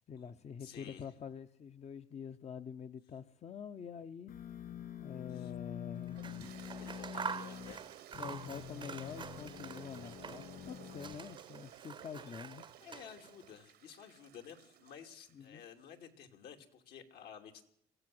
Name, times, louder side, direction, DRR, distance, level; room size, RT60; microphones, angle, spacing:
voice 1, 0.1-4.3 5.0-6.2 8.2-12.6 15.3-15.6, left 7 dB, 40° left, 10 dB, 0.8 m, -46 dB
voice 2, 0.6-1.1 5.3-5.5 6.8-7.8 12.1-12.4 12.8-17.6, left 8 dB, 75° left, 5 dB, 3.0 m, -53 dB
sound 1, 4.3-7.7 8.1-11.1, left 10 dB, 60° left, 4.1 m, -47 dB
Scissors, 6.1-10.6 10.9-13.5, right 6 dB, 30° right, 0.7 m, -46 dB
Toilet flush, 6.1-15.5, right 12 dB, 70° right, 1.1 m, -55 dB
23.0 x 15.5 x 7.8 m, 0.72 s
cardioid pair, 110°, 17 cm